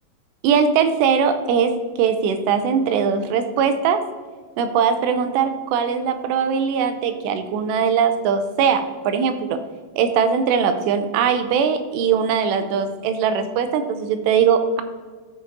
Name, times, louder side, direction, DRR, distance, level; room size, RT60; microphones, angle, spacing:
voice 1, 0.4-4.0 4.6-9.6 10.0-14.8, right 7 dB, 85° right, 8 dB, 2.7 m, -20 dB
13.5 x 6.3 x 2.6 m, 1.4 s
omnidirectional pair, 5.0 m